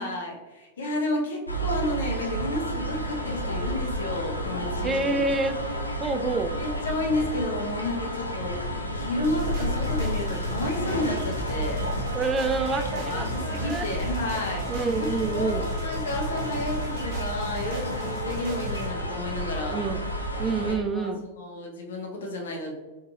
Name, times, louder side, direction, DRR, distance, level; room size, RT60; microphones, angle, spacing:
voice 1, 0.0-5.2 6.5-8.6 8.9-11.9 12.9-14.7 15.0-19.8 20.6-22.7, left 1 dB, 65° left, 1 dB, 0.7 m, -31 dB
sound 1, 1.5-20.7, equal, 85° left, 0.4 m, -31 dB
voice 2, 4.8-5.6 6.0-6.6 12.1-13.9 14.7-15.6 19.7-20.0 20.4-21.2, right 3 dB, 20° right, 7 dB, 0.3 m, -27 dB
sound 2, 9.2-18.9, equal, 40° right, 1.0 m, -40 dB
3.9 x 2.7 x 2.3 m, 1.2 s
figure-of-eight pair, 90°, 0 cm